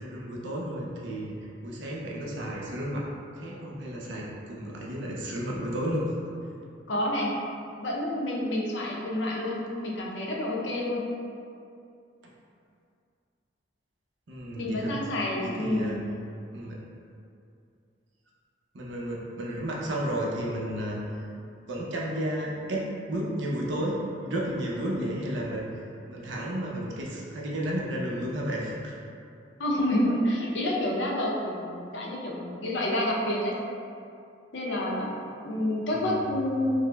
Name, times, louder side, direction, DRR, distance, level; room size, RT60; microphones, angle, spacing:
voice 1, 0.0-1.4 1.6-3.0 3.4-6.1 14.3-16.0 16.5-16.8 18.7-21.2 21.7-29.0 35.9-36.3, equal, 80° right, -3 dB, 0.6 m, -32 dB
voice 2, 6.9-7.3 7.8-11.0 14.6-15.9 29.6-33.5 34.5-35.1 35.4-36.7, left 1 dB, 75° left, -3 dB, 0.6 m, -28 dB
4.9 x 2.0 x 2.2 m, 2.5 s
head